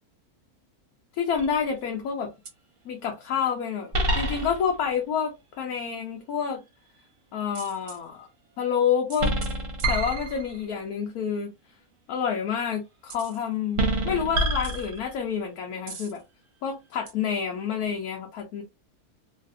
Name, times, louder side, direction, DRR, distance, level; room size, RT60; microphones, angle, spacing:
voice 1, 1.2-2.3 2.8-6.6 7.3-8.3 8.6-9.3 9.9-11.5 12.1-16.2 16.6-18.6, left 7 dB, 75° left, 1.2 m, -28 dB
sound 1, 1.3-1.8 2.5-2.6 3.9-4.8 7.5-8.0 9.1-10.7 13.1-13.4 13.8-15.3 15.9-16.2 17.1-17.2, right 1 dB, 60° right, 1.3 m, -28 dB
3.2 x 2.5 x 2.6 m
omnidirectional pair, 1.6 m